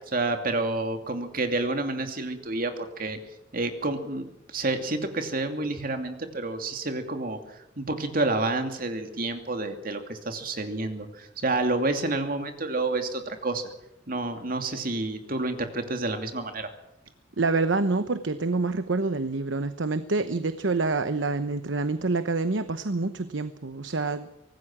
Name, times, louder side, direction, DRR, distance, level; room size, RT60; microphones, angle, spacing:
voice 1, 0.0-3.2 3.5-4.3 4.5-13.6 14.1-16.7, right 2 dB, 50° right, 6 dB, 2.6 m, -29 dB
voice 2, 17.4-24.3, right 3 dB, 90° right, 11 dB, 1.0 m, -27 dB
25.0 x 18.5 x 6.1 m, 0.89 s
head